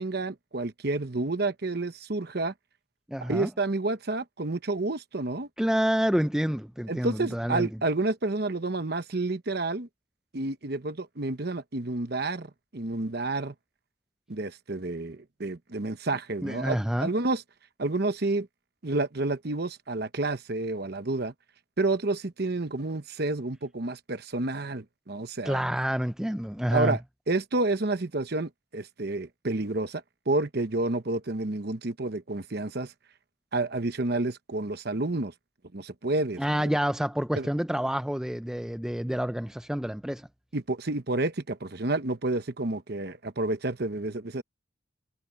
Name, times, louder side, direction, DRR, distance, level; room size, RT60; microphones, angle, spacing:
voice 1, 0.0-2.5 3.3-5.5 6.9-9.9 10.3-13.5 14.3-17.4 17.8-18.5 18.8-21.3 21.8-25.6 26.7-27.0 27.3-32.9 33.5-35.3 35.7-36.7 37.3-37.5 40.5-44.4, right 2 dB, 50° right, 1.0 m, -30 dB
voice 2, 3.1-3.5 5.6-7.7 16.4-17.1 25.4-27.0 36.4-40.3, equal, 5° right, 0.4 m, -28 dB
head